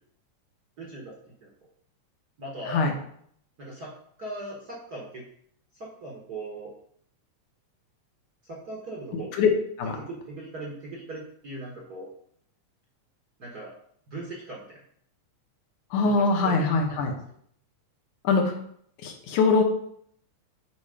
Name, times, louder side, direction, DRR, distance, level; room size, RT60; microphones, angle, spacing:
voice 1, 0.8-1.1 1.4-1.5 2.4-2.9 3.6-3.9 4.2-5.2 5.8-6.7 8.5-9.3 10.0-12.1 13.4-13.7 14.1-14.8 16.0-16.7, right 2 dB, 50° right, -3 dB, 1.1 m, -39 dB
voice 2, 9.1-9.5 9.8-10.0 15.9-17.1 18.2-18.6 19.0-19.6, left 4 dB, 80° left, 2 dB, 2.6 m, -23 dB
8.1 x 4.3 x 5.0 m, 0.65 s
omnidirectional pair, 3.6 m